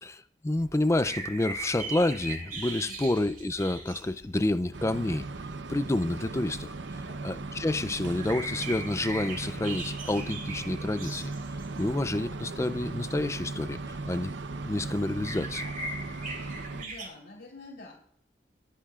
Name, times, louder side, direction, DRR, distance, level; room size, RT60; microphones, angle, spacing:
voice 1, 0.0-5.3 5.7-6.7 7.2-11.3 11.8-14.3 14.6-15.6, left 2 dB, 15° left, 0.4 m, -29 dB
sound 1, 0.5-17.1, right 2 dB, 55° right, 3.4 m, -41 dB
sound 2, 4.7-16.8, right 3 dB, 90° right, 0.8 m, -38 dB
voice 2, 16.4-18.0, left 2 dB, 70° left, 3.8 m, -48 dB
22.5 x 10.0 x 2.4 m
head